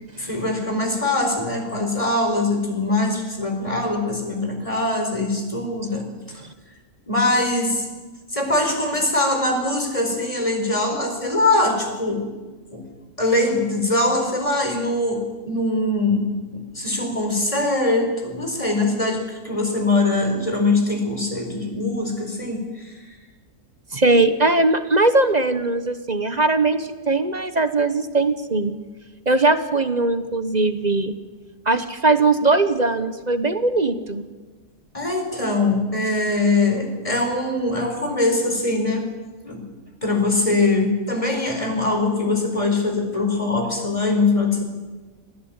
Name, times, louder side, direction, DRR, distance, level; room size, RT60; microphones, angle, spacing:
voice 1, 0.2-6.1 7.1-7.9 8.3-12.3 12.7-12.9 13.2-22.9 34.9-39.1 39.4-39.7 40.0-44.6, left 2 dB, 20° left, 3 dB, 4.7 m, -22 dB
voice 2, 23.9-28.8 29.3-31.1 31.6-34.3, right 2 dB, 30° right, 10 dB, 1.0 m, -20 dB
26.0 x 16.0 x 8.9 m, 1.3 s
omnidirectional pair, 1.8 m